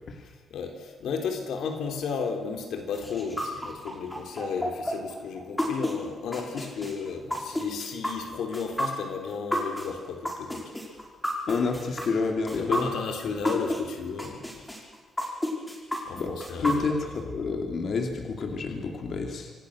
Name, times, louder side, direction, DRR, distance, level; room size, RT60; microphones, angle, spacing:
voice 1, 0.5-10.7 12.6-14.5 16.1-16.9, left 5 dB, 85° left, 4 dB, 3.7 m, -33 dB
sound 1, 2.9-13.8 14.2-17.2, equal, 10° left, 5.8 m, -31 dB
voice 2, 11.5-12.9 16.1-16.3 16.6-19.5, left 4 dB, 55° left, 3 dB, 2.8 m, -29 dB
26.5 x 18.0 x 6.6 m, 1.5 s
cardioid pair, 115°, 0 cm